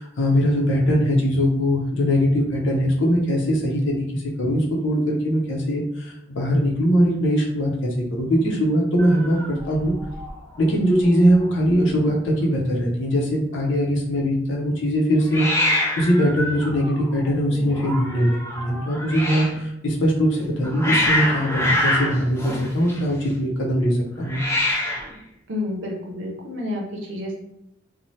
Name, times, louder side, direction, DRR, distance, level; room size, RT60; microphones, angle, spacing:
voice 1, 0.0-9.9 10.6-24.4, equal, 80° left, -2 dB, 0.6 m, -21 dB
Hiss, 9.0-10.3 10.6-11.0 11.3-11.4 11.6-12.3 15.3-19.6 20.3-23.3 24.2-25.2, left 1 dB, 15° left, 0.5 m, -26 dB
voice 2, 25.5-27.4, left 2 dB, 90° right, -1 dB, 0.6 m, -29 dB
3.1 x 2.1 x 2.7 m, 0.84 s
head